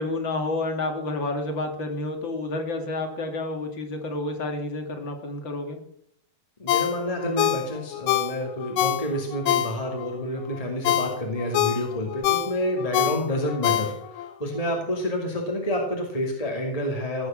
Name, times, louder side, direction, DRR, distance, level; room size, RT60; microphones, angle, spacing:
voice 1, 0.0-5.8, left 2 dB, 40° left, 4 dB, 2.5 m, -29 dB
voice 2, 6.6-17.3, left 1 dB, 15° left, 1 dB, 1.8 m, -28 dB
Ringtone, 6.7-10.1 10.5-14.3 14.7-14.8, left 12 dB, 85° left, 2.4 m, -26 dB
16.5 x 10.0 x 7.5 m, 0.70 s
omnidirectional pair, 3.9 m